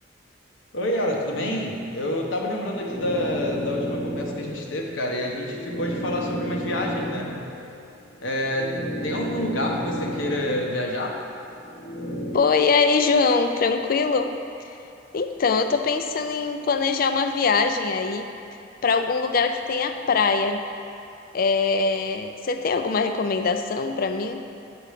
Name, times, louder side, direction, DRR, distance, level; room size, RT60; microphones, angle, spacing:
voice 1, 0.7-7.3 8.2-11.1, left 1 dB, 90° left, -1 dB, 1.0 m, -28 dB
sound 1, 2.4-11.0 11.4-12.4, equal, 65° left, 1.3 m, -33 dB
voice 2, 12.3-14.3 15.1-18.3 18.8-20.6 21.3-24.4, left 4 dB, 50° left, 7 dB, 0.4 m, -22 dB
7.8 x 4.9 x 4.9 m, 2.8 s
head